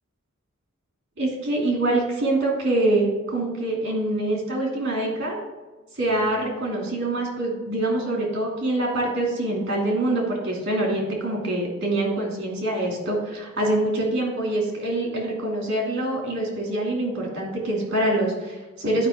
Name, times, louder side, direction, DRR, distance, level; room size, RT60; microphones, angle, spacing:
voice 1, 1.2-5.4 5.9-19.1, right 1 dB, 55° right, -1 dB, 2.6 m, -25 dB
11.0 x 5.2 x 3.7 m, 1.2 s
head